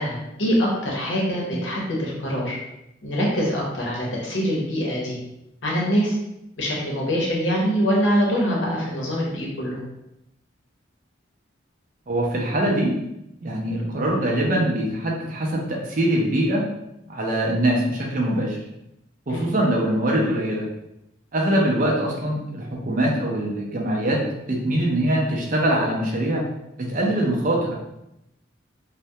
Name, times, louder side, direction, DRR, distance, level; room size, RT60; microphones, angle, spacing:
voice 1, 0.0-2.6 3.0-5.2 5.6-6.2 6.6-9.8 19.3-19.5, equal, 70° left, -3 dB, 0.7 m, -24 dB
voice 2, 12.1-12.9 13.4-16.6 17.1-18.6 19.3-20.7 21.3-24.2 24.5-26.4 26.8-27.7, right 1 dB, 40° right, -1 dB, 0.4 m, -23 dB
2.2 x 2.1 x 2.7 m, 0.86 s
head